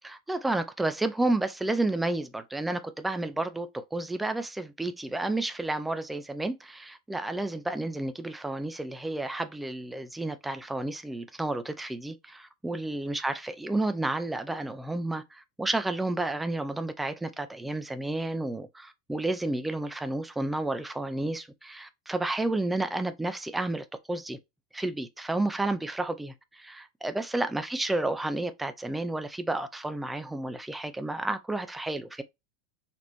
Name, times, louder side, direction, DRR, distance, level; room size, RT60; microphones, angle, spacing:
voice 1, 0.0-24.4 24.7-32.2, right 2 dB, 5° right, 0.4 m, -31 dB
4.2 x 3.2 x 3.0 m
supercardioid pair, 170°, 2 cm